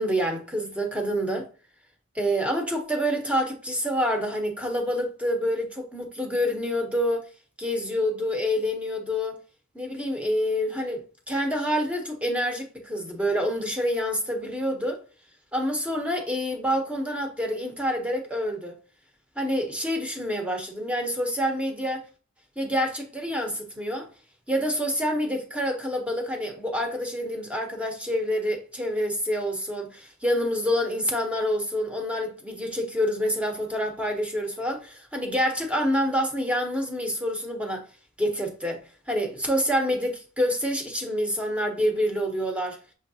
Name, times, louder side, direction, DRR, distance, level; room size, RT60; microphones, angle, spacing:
voice 1, 0.0-1.5 2.1-7.3 7.6-9.4 9.7-15.0 15.5-18.7 19.4-22.0 22.6-24.1 24.5-37.8 38.2-38.8 39.1-42.8, equal, 5° right, 0.8 m, -27 dB
6.3 x 3.1 x 2.7 m
head